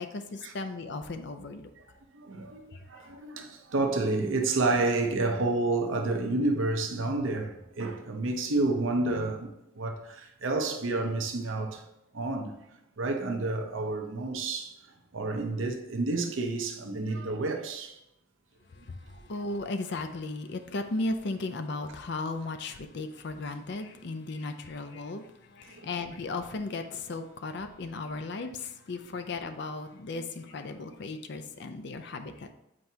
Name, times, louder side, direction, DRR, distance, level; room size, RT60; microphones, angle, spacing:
voice 1, 0.0-1.7 2.7-2.8 18.9-19.0 19.3-25.2 25.5-32.5, left 3 dB, 60° left, 0.5 m, -36 dB
voice 2, 2.1-9.5 9.8-11.8 12.1-12.5 13.0-14.7 15.1-17.9 19.1-19.2 25.7-25.9 30.2-30.3, right 2 dB, 75° right, 0.7 m, -29 dB
7.6 x 4.4 x 2.8 m
head